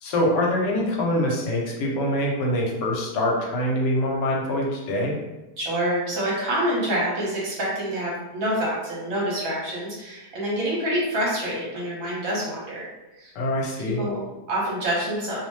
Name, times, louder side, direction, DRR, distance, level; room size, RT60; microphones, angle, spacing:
voice 1, 0.0-5.2 13.4-14.0, left 1 dB, 80° left, -1 dB, 1.2 m, -24 dB
voice 2, 5.6-12.9 13.2-13.3 13.8-15.4, right 1 dB, 60° right, -5 dB, 1.1 m, -27 dB
2.8 x 2.0 x 3.0 m, 1.0 s
omnidirectional pair, 1.8 m